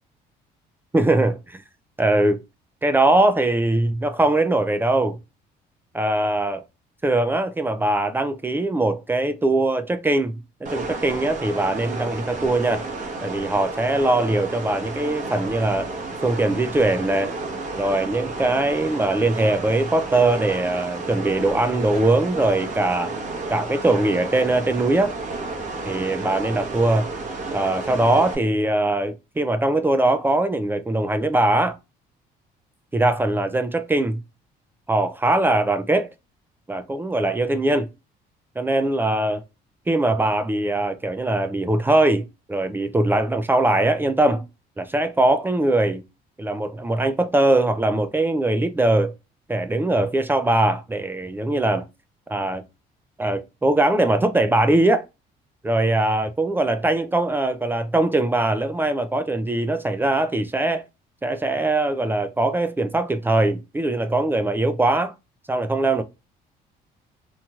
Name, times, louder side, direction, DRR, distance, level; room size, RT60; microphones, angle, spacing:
voice 1, 0.9-1.6 2.0-2.4 2.8-5.2 5.9-6.6 7.0-10.3 10.7-12.8 13.2-15.9 16.2-17.3 17.8-23.1 23.5-25.1 25.9-27.1 27.5-31.7 32.9-34.2 34.9-36.1 36.7-37.9 38.6-39.4 39.9-44.4 44.8-46.0 46.4-49.1 49.5-51.8 52.3-52.6 53.2-55.0 55.6-60.8 61.2-65.1 65.5-66.0, right 2 dB, 10° right, 0.3 m, -21 dB
sound 1, 10.6-28.3, right 3 dB, 50° right, 1.0 m, -32 dB
3.0 x 2.8 x 2.3 m
cardioid pair, 110°, 17 cm